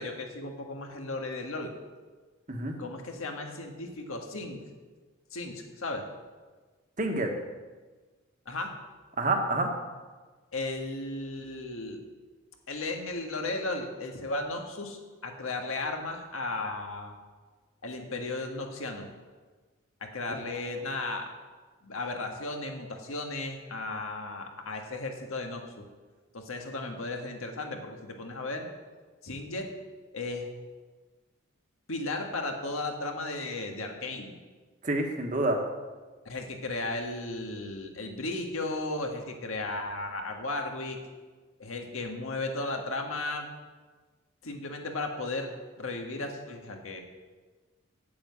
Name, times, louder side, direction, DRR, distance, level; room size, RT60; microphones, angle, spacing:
voice 1, 0.0-1.7 2.8-4.6 5.3-6.0 8.5-8.7 10.5-12.0 12.7-17.2 17.8-19.1 20.0-21.3 21.8-25.6 26.3-28.6 29.2-29.7 30.1-30.5 31.9-34.3 36.3-41.0 41.6-43.5 44.4-45.5 45.8-47.0, left 2 dB, 85° left, 3 dB, 1.7 m, -35 dB
voice 2, 7.0-7.3 9.2-9.7 34.8-35.6, right 2 dB, 40° right, 3 dB, 1.3 m, -27 dB
8.6 x 7.7 x 8.4 m, 1.4 s
head